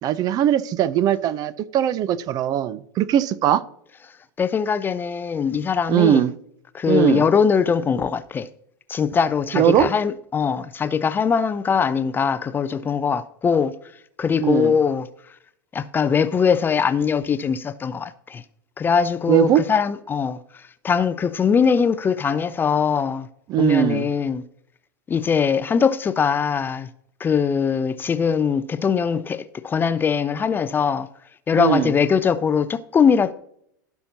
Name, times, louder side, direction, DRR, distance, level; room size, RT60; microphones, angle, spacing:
voice 1, 0.0-3.6 5.9-6.3 6.9-7.2 9.5-9.9 14.4-14.7 19.3-19.6 23.5-24.1 31.5-31.9, right 11 dB, 35° right, 0.6 m, -20 dB
voice 2, 4.4-6.3 6.7-8.5 8.9-13.7 14.2-15.1 15.7-18.4 18.8-20.4 20.8-23.3 23.6-24.4 25.1-26.9 27.2-31.1 31.5-33.3, left 6 dB, 20° left, 0.5 m, -21 dB
16.0 x 5.7 x 2.8 m
figure-of-eight pair, 90°, 11 cm